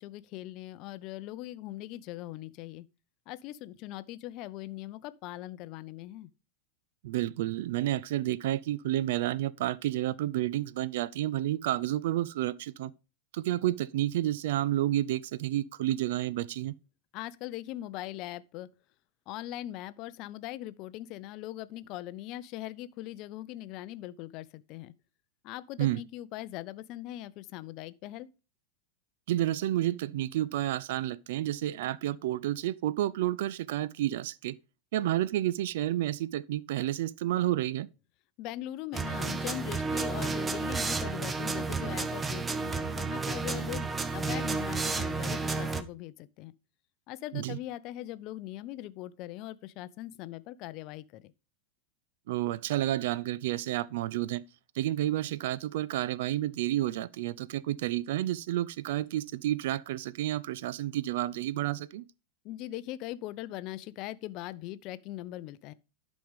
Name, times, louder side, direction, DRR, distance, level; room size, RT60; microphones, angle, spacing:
voice 1, 0.0-2.9 3.3-6.3 17.1-18.7 19.3-24.9 25.4-28.3 38.4-46.5 47.1-51.3 62.4-65.7, left 15 dB, 40° left, 0.5 m, -41 dB
voice 2, 7.0-12.9 13.3-16.7 25.8-26.0 29.3-34.5 34.9-37.9 47.3-47.6 52.3-54.4 54.8-62.0, right 14 dB, 55° right, 0.3 m, -30 dB
sound 1, 38.9-45.8, right 4 dB, 15° right, 0.7 m, -32 dB
11.5 x 5.2 x 3.5 m
figure-of-eight pair, 90°, 0 cm